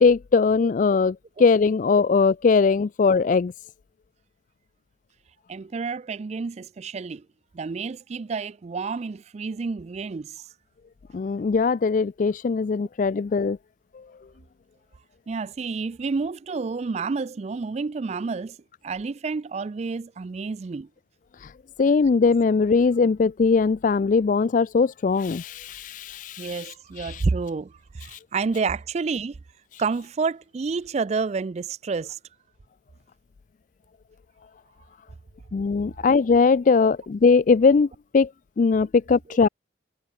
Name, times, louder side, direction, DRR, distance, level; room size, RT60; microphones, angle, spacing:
voice 1, 0.0-3.5 11.1-13.6 21.8-26.5 27.1-27.2 35.5-37.9 38.1-38.3 38.6-39.5, left 4 dB, 40° left, 0.3 m, -20 dB
voice 2, 5.5-7.3 7.5-10.5 15.3-18.6 18.8-20.9 26.4-29.4 29.8-32.2 36.8-36.9, right 4 dB, 35° right, 0.3 m, -29 dB
head